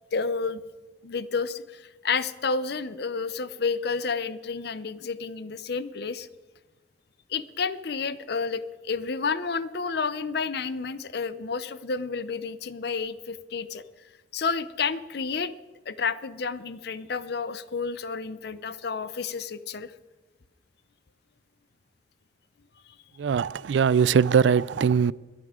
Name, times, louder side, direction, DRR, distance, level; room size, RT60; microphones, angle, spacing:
voice 1, 0.1-0.6 1.0-6.3 7.3-13.8 14.3-15.5 15.9-19.9, left 5 dB, 60° left, 0.6 m, -30 dB
voice 2, 23.2-25.1, right 6 dB, 80° right, 0.4 m, -21 dB
22.0 x 9.6 x 3.7 m
head